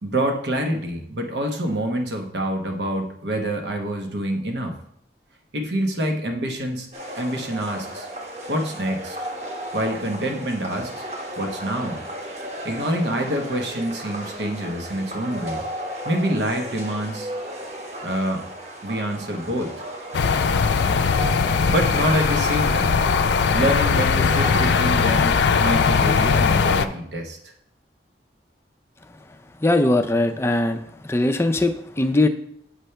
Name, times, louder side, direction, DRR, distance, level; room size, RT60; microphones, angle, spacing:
voice 1, 0.0-4.7 5.5-6.9 7.2-8.1 8.5-9.2 9.7-11.0 11.4-12.0 12.6-15.6 16.0-17.3 18.0-18.4 18.8-19.8 21.7-23.0 23.5-27.4, right 1 dB, 75° right, 3 dB, 1.0 m, -26 dB
sound 1, 6.9-26.7, right 1 dB, 40° right, 1.1 m, -34 dB
sound 2, 20.1-26.9, left 5 dB, 75° left, 0.4 m, -20 dB
voice 2, 29.6-30.8 31.1-32.3, left 2 dB, 15° left, 7 dB, 0.4 m, -20 dB
8.1 x 3.3 x 5.6 m, 0.71 s
head